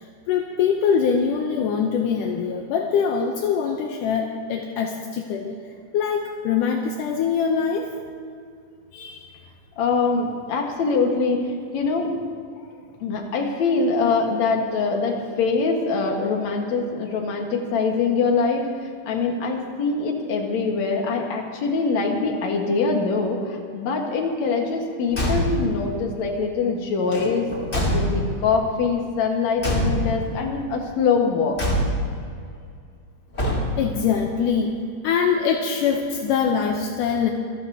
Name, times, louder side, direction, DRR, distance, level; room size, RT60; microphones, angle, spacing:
voice 1, 0.0-5.6 5.9-7.9 8.9-9.3 33.8-37.3, left 6 dB, 80° left, 2 dB, 2.4 m, -23 dB
voice 2, 9.8-12.1 13.0-18.7 19.1-27.5 27.7-31.6, left 4 dB, 60° left, 1 dB, 2.7 m, -23 dB
Car / Truck / Slam, 25.1-25.8 27.1-28.5 29.6-30.4 31.6-32.2 33.3-34.0, equal, 20° left, 2.8 m, -24 dB
26.5 x 14.0 x 2.9 m, 2.3 s
omnidirectional pair, 3.8 m